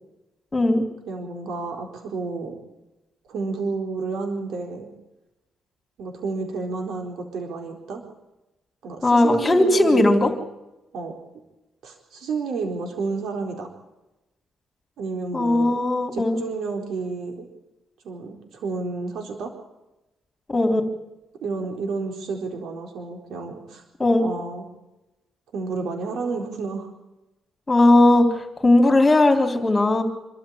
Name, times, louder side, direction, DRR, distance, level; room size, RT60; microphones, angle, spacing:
voice 1, 0.5-0.9 9.0-10.3 15.3-16.4 20.5-20.8 24.0-24.3 27.7-30.0, left 2 dB, 20° left, 3 dB, 3.7 m, -18 dB
voice 2, 1.1-2.6 3.3-4.9 6.0-8.0 8.8-10.2 10.9-11.1 11.8-13.7 15.0-15.8 16.1-17.5 18.0-19.5 21.4-23.8 24.2-24.7 25.5-26.9, right 4 dB, 75° right, 2 dB, 4.0 m, -30 dB
26.5 x 13.5 x 8.7 m, 0.99 s
cardioid pair, 120°, 0 cm